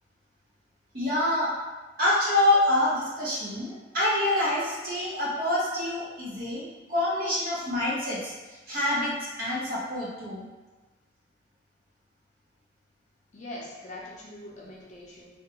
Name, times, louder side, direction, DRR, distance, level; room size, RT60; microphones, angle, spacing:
voice 1, 0.9-1.5 2.0-8.3 8.7-10.4, left 1 dB, 55° right, -7 dB, 0.8 m, -26 dB
voice 2, 13.3-15.4, left 1 dB, 40° left, -4 dB, 0.5 m, -42 dB
2.5 x 2.2 x 2.8 m, 1.2 s
head